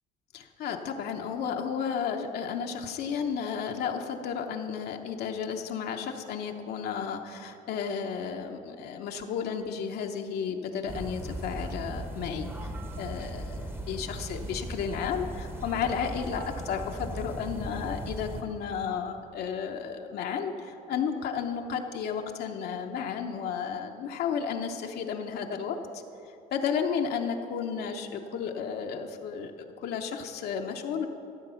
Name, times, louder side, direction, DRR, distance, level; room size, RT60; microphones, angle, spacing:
voice 1, 0.3-26.0 26.5-31.1, left 7 dB, 70° left, 3 dB, 0.8 m, -33 dB
sound 1, 10.9-18.4, right 1 dB, 15° right, 0.9 m, -38 dB
14.5 x 7.1 x 5.6 m, 2.7 s
cardioid pair, 110°, 17 cm